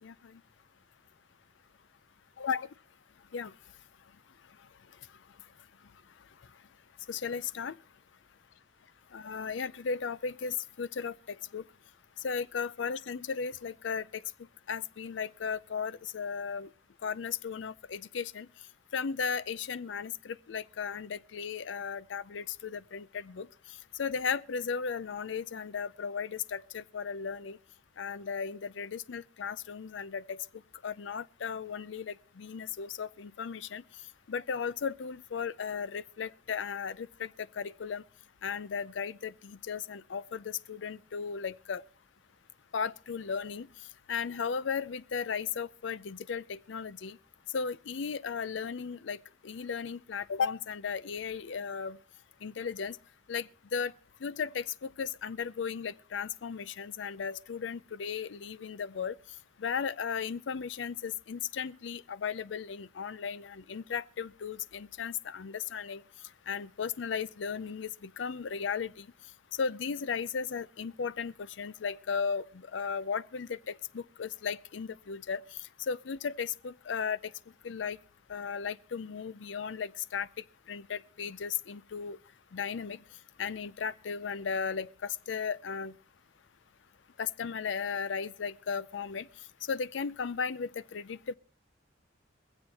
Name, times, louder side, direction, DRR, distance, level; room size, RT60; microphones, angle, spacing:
voice 1, 0.0-0.4 2.4-2.7 3.3-3.5 7.1-7.7 9.1-11.6 12.2-14.2 14.7-16.7 17.0-18.5 18.9-23.5 24.0-27.6 28.0-30.4 30.8-33.8 34.3-38.0 38.4-41.8 42.7-43.7 44.1-47.2 47.5-49.2 49.4-52.0 52.4-53.0 53.3-53.9 54.2-59.2 59.6-66.0 66.5-69.1 69.6-75.4 75.9-77.3 77.6-78.0 78.3-80.3 80.7-82.2 82.5-83.0 83.4-85.9 87.2-89.3 89.7-91.4, left 6 dB, 85° left, 0.5 m, -35 dB
23.0 x 7.9 x 4.2 m
head